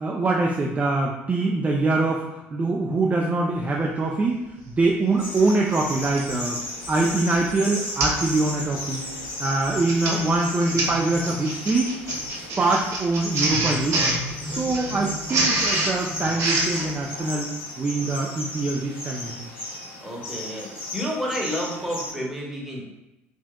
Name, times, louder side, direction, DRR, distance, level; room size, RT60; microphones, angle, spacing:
voice 1, 0.0-6.6 6.9-9.0 9.4-11.9 12.3-14.0 14.4-17.5 17.8-19.5, right 3 dB, 20° right, -2 dB, 0.4 m, -24 dB
Printer, 4.8-4.9 6.0-6.3 6.9-7.1 7.4-7.5 8.0-8.3 8.6-8.9 9.6-16.9, right 2 dB, 45° right, 0.8 m, -26 dB
sound 1, 5.2-22.1, left 2 dB, 75° left, 1.4 m, -35 dB
voice 2, 14.4-14.7 20.0-22.8, equal, 5° right, -3 dB, 0.9 m, -30 dB
3.6 x 2.5 x 2.2 m, 0.97 s
figure-of-eight pair, 60°, 7 cm